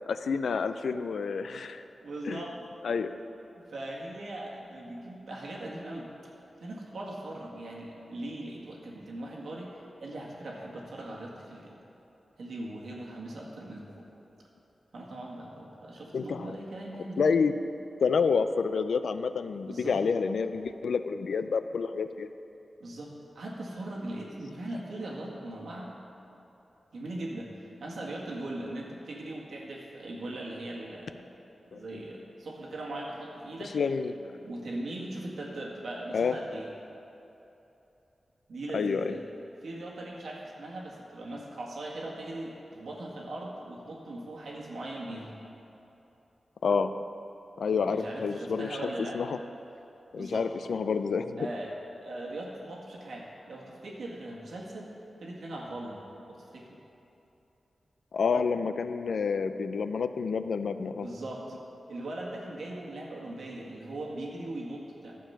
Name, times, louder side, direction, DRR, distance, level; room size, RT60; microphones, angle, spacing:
voice 1, 0.1-1.8 2.3-2.4 2.8-3.1 16.1-16.6 17.2-17.5 18.0-22.3 31.7-32.0 33.7-34.4 36.1-36.3 38.7-39.1 46.6-46.9 47.6-49.4 50.1-51.5 58.1-61.1, left 5 dB, 85° left, 10 dB, 0.4 m, -29 dB
voice 2, 1.6-2.5 3.7-6.1 6.6-11.8 12.4-14.1 14.9-17.4 19.7-20.0 22.8-25.9 26.9-31.3 31.7-33.8 34.4-36.7 38.5-39.2 39.6-45.4 47.8-49.2 50.1-50.5 51.4-54.9 55.2-56.8 61.0-61.6 61.9-65.2, right 1 dB, 85° right, -2 dB, 1.8 m, -40 dB
11.5 x 7.1 x 5.8 m, 3.0 s
wide cardioid pair, 90°, 0 cm